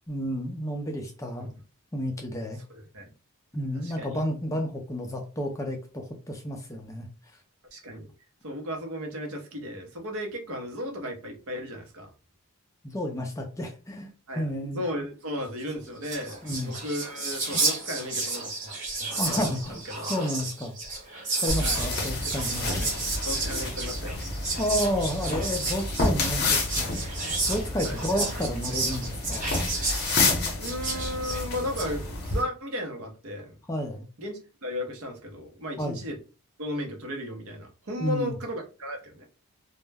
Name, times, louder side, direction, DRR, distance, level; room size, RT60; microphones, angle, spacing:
voice 1, 0.1-1.5 1.9-2.6 3.5-7.1 12.8-14.8 16.4-16.7 19.1-20.7 21.4-23.0 24.6-27.2 27.5-29.5 33.7-34.1 35.8-36.0 38.0-38.3, equal, 15° left, 3 dB, 0.3 m, -31 dB
voice 2, 2.7-3.1 3.8-4.2 7.7-8.1 8.4-12.1 14.3-18.7 19.0-20.1 21.6-21.9 22.2-22.3 23.3-24.2 27.8-28.0 30.5-33.6 34.2-36.2 36.6-39.3, left 1 dB, 70° right, 3 dB, 0.7 m, -35 dB
Whispering, 15.7-15.8 16.0-31.9, right 3 dB, 35° right, 1.0 m, -32 dB
sound 1, 21.5-32.4, left 2 dB, 45° left, 0.7 m, -30 dB
2.2 x 2.0 x 3.3 m, 0.34 s
head